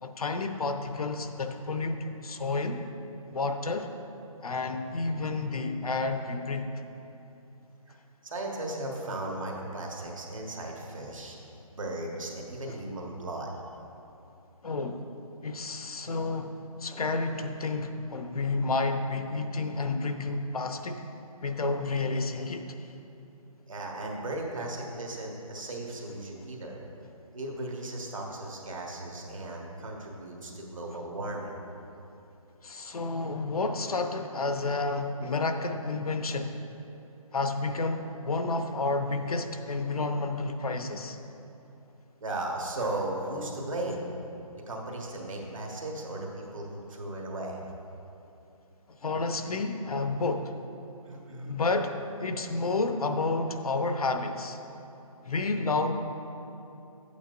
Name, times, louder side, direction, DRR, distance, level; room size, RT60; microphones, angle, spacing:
voice 1, 0.0-2.8 3.3-3.9 4.4-6.7 14.6-15.0 15.4-16.5 16.8-21.0 21.4-22.9 32.6-36.6 37.3-41.2 48.9-50.5 51.5-54.6 55.2-56.1, left 3 dB, 75° left, 7 dB, 0.8 m, -30 dB
voice 2, 8.2-11.4 11.7-13.5 23.7-26.8 27.3-31.5 42.2-44.1 44.7-47.6 51.0-51.5, right 1 dB, 60° right, -1 dB, 1.5 m, -36 dB
11.0 x 8.5 x 2.5 m, 2.9 s
hypercardioid pair, 180°, 19 cm